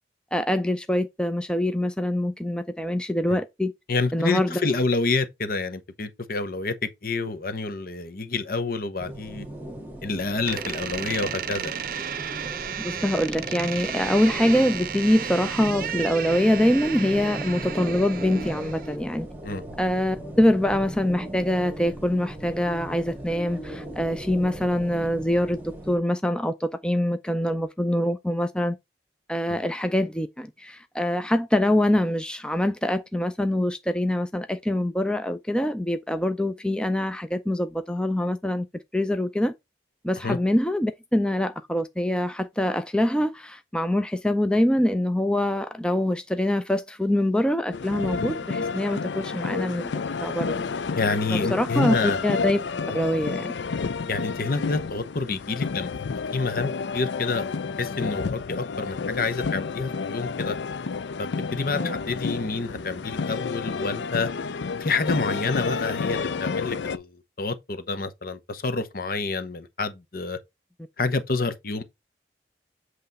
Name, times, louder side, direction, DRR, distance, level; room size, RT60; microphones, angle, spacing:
voice 1, 0.3-3.7 4.1-4.5 12.8-19.3 19.8-25.6 25.9-28.8 29.3-38.7 38.9-39.5 40.0-49.9 50.2-50.6 51.5-52.6 52.9-53.5 61.7-61.9, left 1 dB, 5° left, 0.4 m, -24 dB
voice 2, 3.9-9.5 10.0-11.8 19.4-19.6 29.5-29.6 40.2-40.4 51.0-52.2 52.9-53.0 54.1-56.0 56.3-60.6 61.2-64.3 64.8-70.4 71.0-71.8, left 3 dB, 55° left, 0.9 m, -28 dB
sound 1, 9.0-26.0, right 1 dB, 10° right, 1.6 m, -38 dB
Door, 10.5-19.0, right 8 dB, 50° right, 0.6 m, -33 dB
sound 2, 47.7-67.0, left 5 dB, 85° left, 0.5 m, -30 dB
8.1 x 3.2 x 5.3 m
head